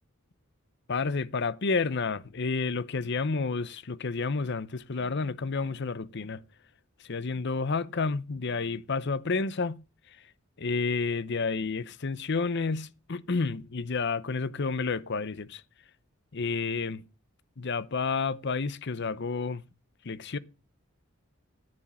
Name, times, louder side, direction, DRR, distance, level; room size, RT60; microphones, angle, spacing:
voice 1, 0.9-6.4 7.0-9.8 10.6-15.6 16.3-17.0 17.6-19.6 20.0-20.4, left 4 dB, 60° left, 0.8 m, -30 dB
10.5 x 9.9 x 4.3 m
head